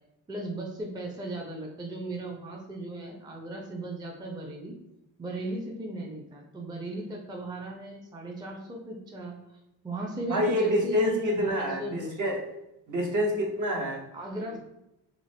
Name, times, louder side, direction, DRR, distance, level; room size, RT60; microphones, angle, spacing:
voice 1, 0.3-4.7 5.2-9.6 9.8-12.3 14.1-14.6, right 1 dB, 10° right, 0 dB, 0.4 m, -37 dB
voice 2, 10.3-12.4 12.9-14.0, equal, 50° right, 0 dB, 0.8 m, -27 dB
2.4 x 2.1 x 3.3 m, 0.89 s
cardioid pair, 70°, 40 cm